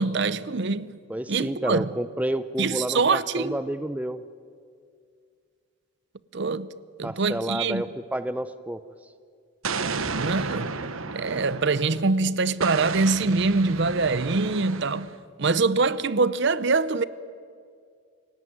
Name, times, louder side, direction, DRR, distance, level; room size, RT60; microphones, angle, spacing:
voice 1, 0.0-0.9 1.3-1.9 2.6-3.6 6.3-6.7 7.0-7.8 10.2-10.7 11.1-15.1 15.4-17.0, right 3 dB, 55° right, 0.7 m, -24 dB
voice 2, 1.1-4.2 7.0-8.8, right 1 dB, 5° right, 0.5 m, -30 dB
Explosion, 9.6-12.1 12.6-15.2, right 4 dB, 80° right, 1.2 m, -32 dB
28.0 x 17.0 x 9.3 m
head